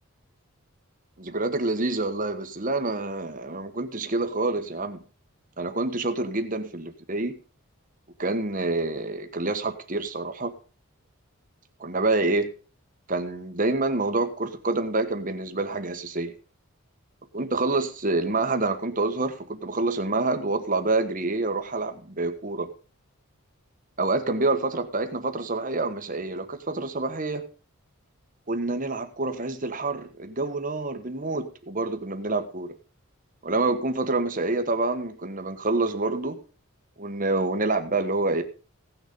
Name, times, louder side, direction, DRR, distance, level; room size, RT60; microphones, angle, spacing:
voice 1, 1.2-5.0 5.6-7.4 8.2-10.5 11.8-12.5 13.1-16.3 17.3-22.7 24.0-27.4 28.5-32.7 33.4-36.4 37.0-38.4, right 2 dB, 40° right, 8 dB, 1.5 m, -27 dB
16.5 x 6.8 x 5.3 m, 0.37 s
head